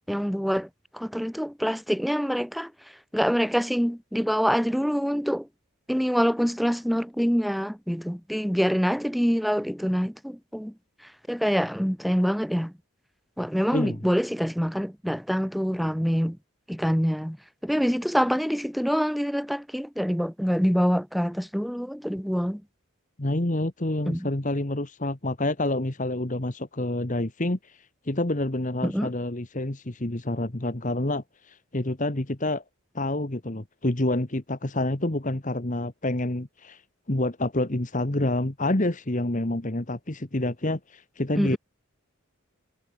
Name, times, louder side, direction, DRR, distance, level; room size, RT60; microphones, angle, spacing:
voice 1, 0.1-2.7 3.1-5.5 5.9-10.7 11.3-12.7 13.4-16.4 16.7-17.4 17.6-22.6 24.1-24.3 28.8-29.1 41.4-41.6, equal, ahead, 2.8 m, -25 dB
voice 2, 23.2-27.8 28.0-32.6 32.9-36.8 37.1-41.6, left 1 dB, 35° left, 1.5 m, -28 dB
head